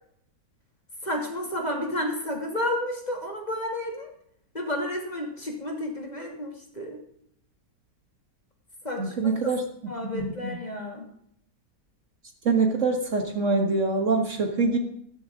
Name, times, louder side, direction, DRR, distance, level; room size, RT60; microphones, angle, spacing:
voice 1, 1.0-4.1 4.5-7.0 8.8-9.5 9.9-11.1, left 1 dB, 25° left, 1 dB, 2.6 m, -31 dB
voice 2, 9.0-9.6 12.5-14.8, right 4 dB, 50° right, 3 dB, 1.8 m, -24 dB
14.0 x 13.5 x 3.7 m, 0.70 s
omnidirectional pair, 1.7 m